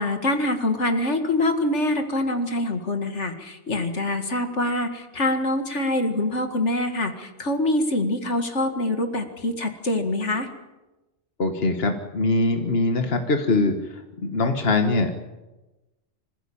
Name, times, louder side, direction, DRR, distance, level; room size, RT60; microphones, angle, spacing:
voice 1, 0.0-10.5, left 1 dB, 75° left, 6 dB, 2.4 m, -25 dB
voice 2, 11.4-15.1, left 2 dB, 55° left, 5 dB, 1.8 m, -23 dB
25.5 x 16.0 x 8.8 m, 1.1 s
omnidirectional pair, 1.2 m